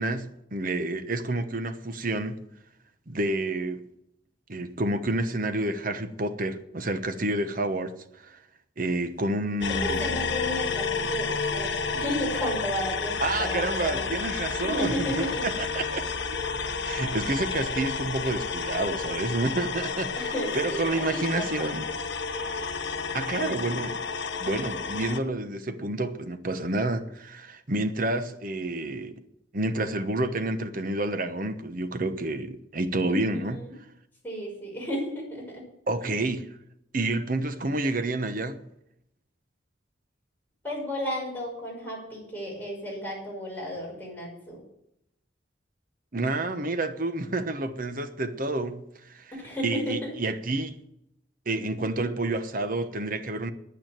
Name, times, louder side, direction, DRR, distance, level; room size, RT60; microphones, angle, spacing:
voice 1, 0.0-2.4 3.1-3.8 4.5-8.4 8.8-10.2 13.2-16.0 16.8-21.8 23.1-24.0 24.4-29.2 29.5-33.6 35.9-36.5 36.9-38.6 46.1-49.3 49.6-50.8 51.5-53.5, right 2 dB, 50° right, 1.0 m, -29 dB
sound 1, 9.6-25.2, left 5 dB, 70° left, 1.0 m, -31 dB
voice 2, 9.8-14.1 14.6-15.6 20.1-21.7 22.5-22.7 33.1-33.8 34.2-35.6 40.6-44.6 49.3-50.1, equal, 10° left, 5.9 m, -33 dB
10.0 x 9.2 x 8.9 m
head